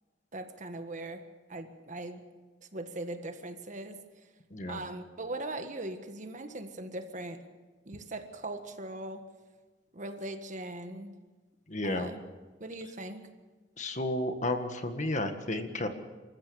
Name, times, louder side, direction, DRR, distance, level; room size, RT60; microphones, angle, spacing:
voice 1, 0.3-1.2 1.5-2.2 2.7-4.0 4.7-7.4 7.8-9.2 9.9-11.1 11.8-12.2 12.6-13.3, right 2 dB, 45° right, 7 dB, 1.6 m, -40 dB
voice 2, 4.5-4.8 11.7-12.1 13.8-15.9, left 1 dB, 40° left, 7 dB, 1.7 m, -32 dB
27.0 x 14.5 x 7.0 m, 1.3 s
head